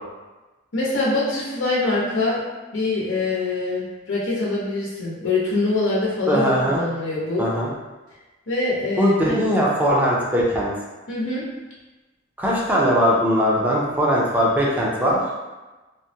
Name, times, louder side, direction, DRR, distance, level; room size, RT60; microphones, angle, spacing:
voice 1, 0.7-2.4 2.7-7.5 8.5-9.4 11.1-11.4, left 2 dB, 70° left, -6 dB, 0.8 m, -24 dB
voice 2, 6.3-6.8 7.4-7.7 9.0-10.7 12.4-15.2, equal, 10° right, -5 dB, 0.5 m, -20 dB
3.4 x 2.1 x 2.7 m, 1.2 s
head